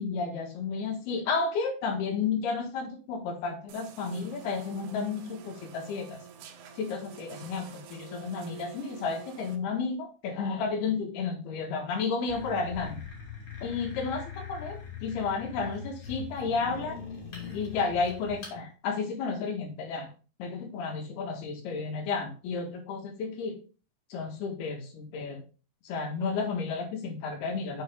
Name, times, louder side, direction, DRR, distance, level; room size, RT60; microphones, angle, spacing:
voice 1, 0.0-6.2 6.8-13.0 13.6-17.0 17.5-20.1 20.4-23.6 24.1-25.4 25.8-27.8, left 4 dB, 75° left, 2 dB, 3.7 m, -32 dB
sound 1, 3.7-9.6, right 7 dB, 80° right, 3.0 m, -48 dB
sound 2, 12.3-18.6, left 6 dB, 40° left, 3.1 m, -41 dB
6.9 x 6.7 x 3.8 m, 0.36 s
omnidirectional pair, 4.6 m